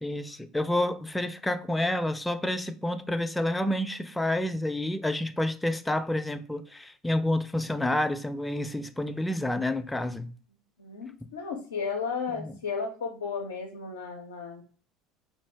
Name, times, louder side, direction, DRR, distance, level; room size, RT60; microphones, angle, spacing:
voice 1, 0.0-10.3 12.4-12.5, left 1 dB, 10° left, 0.4 m, -29 dB
voice 2, 10.8-14.6, left 5 dB, 85° left, 0.4 m, -34 dB
2.7 x 2.6 x 3.2 m
hypercardioid pair, 70°, 0 cm